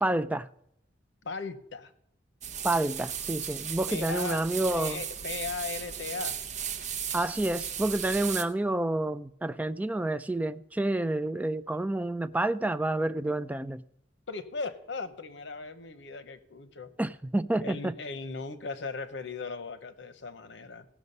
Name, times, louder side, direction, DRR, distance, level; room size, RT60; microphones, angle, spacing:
voice 1, 0.0-0.5 2.6-5.0 7.1-13.8 17.0-17.9, right 1 dB, 10° right, 0.3 m, -29 dB
voice 2, 1.2-1.9 3.9-4.4 4.7-6.4 14.3-16.9 17.6-20.9, left 4 dB, 80° left, 0.8 m, -38 dB
sound 1, 2.4-8.4, right 8 dB, 45° right, 0.8 m, -36 dB
16.5 x 6.1 x 5.4 m
head